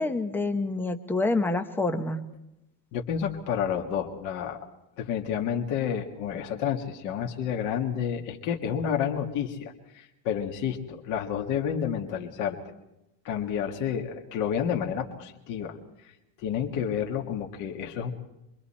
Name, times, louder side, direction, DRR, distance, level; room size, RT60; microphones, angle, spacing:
voice 1, 0.0-2.2, left 2 dB, 5° left, 8 dB, 0.8 m, -27 dB
voice 2, 2.9-4.6 5.0-12.6 13.3-15.8 16.4-18.1, left 8 dB, 35° left, 2 dB, 1.8 m, -30 dB
26.5 x 23.5 x 4.3 m, 0.90 s
supercardioid pair, 165°, 50 cm